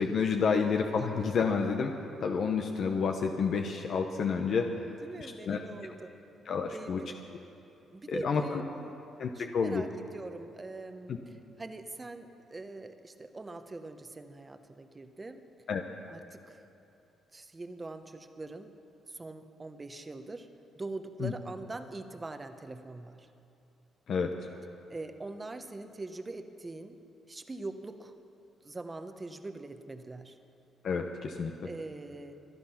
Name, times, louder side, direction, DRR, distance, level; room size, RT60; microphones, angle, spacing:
voice 1, 0.0-1.9 2.2-4.8 5.4-5.6 6.5-7.0 8.1-8.6 9.2-9.8 11.1-11.2 15.7-15.8 21.2-21.3 24.1-24.3 30.8-31.5, left 5 dB, 60° left, 4 dB, 0.9 m, -29 dB
voice 2, 5.0-6.1 6.7-7.1 7.9-8.9 9.3-15.4 16.1-16.6 17.3-18.7 19.1-20.5 20.8-23.3 24.9-27.0 27.3-28.1 28.6-30.4 31.6-32.3, right 2 dB, 25° right, 8 dB, 1.0 m, -43 dB
24.5 x 9.8 x 5.9 m, 2.8 s
cardioid pair, 90°, 0 cm